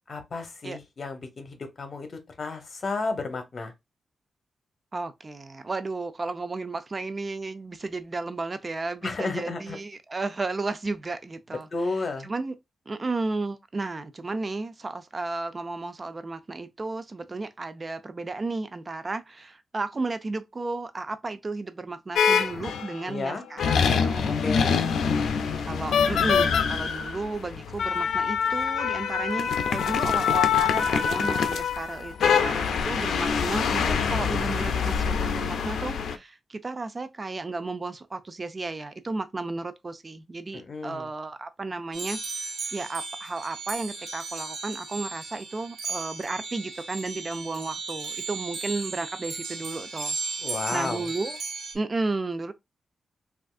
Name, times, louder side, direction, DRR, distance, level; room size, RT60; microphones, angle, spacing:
voice 1, 0.1-3.7 9.0-9.8 11.7-12.3 23.1-23.4 24.3-24.8 40.5-41.1 50.4-51.1, left 3 dB, 50° left, 0.9 m, -32 dB
voice 2, 4.9-12.5 12.9-24.7 25.6-50.2 50.7-51.4 51.7-52.5, right 3 dB, 35° right, 0.5 m, -33 dB
sound 1, 22.2-23.0 23.6-36.2, left 6 dB, 90° left, 0.4 m, -25 dB
sound 2, 41.9-51.7, right 4 dB, 85° right, 1.0 m, -35 dB
3.4 x 2.4 x 2.4 m
cardioid pair, 80°, 0 cm